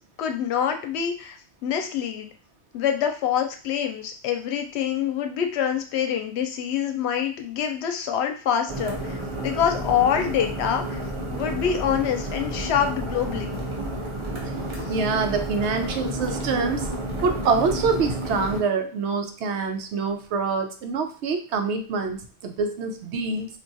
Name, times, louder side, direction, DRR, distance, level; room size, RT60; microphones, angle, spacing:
voice 1, 0.2-2.3 2.7-11.0 11.3-13.6, left 8 dB, 75° left, 6 dB, 0.8 m, -26 dB
sound 1, 8.7-18.6, right 1 dB, 30° right, 0.8 m, -31 dB
voice 2, 14.9-16.9 17.2-23.5, right 4 dB, 90° right, 5 dB, 0.9 m, -25 dB
2.5 x 2.3 x 3.9 m, 0.38 s
omnidirectional pair, 1.1 m